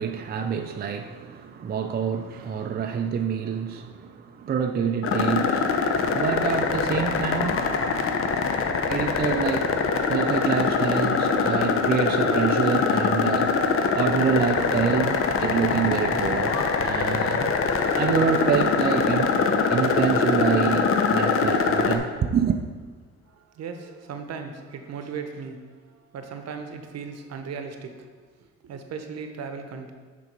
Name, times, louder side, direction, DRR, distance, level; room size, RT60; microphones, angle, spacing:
voice 1, 0.0-8.0 8.9-9.7 10.1-13.5 13.9-17.5 18.0-19.4 19.7-22.6, right 7 dB, 35° right, 0.4 m, -27 dB
sound 1, 5.0-22.0, left 5 dB, 45° left, 0.7 m, -23 dB
sound 2, 6.0-6.9 7.3-11.0 11.8-11.9 12.1-14.0 14.7-15.8 16.3-19.1 19.8-21.8 22.1-22.2 22.5-22.6 23.2-23.3, left 3 dB, 85° left, 0.9 m, -43 dB
voice 2, 23.4-28.1 28.6-29.9, right 5 dB, 55° right, 0.8 m, -37 dB
6.4 x 3.8 x 5.2 m
cardioid pair, 90°, 30 cm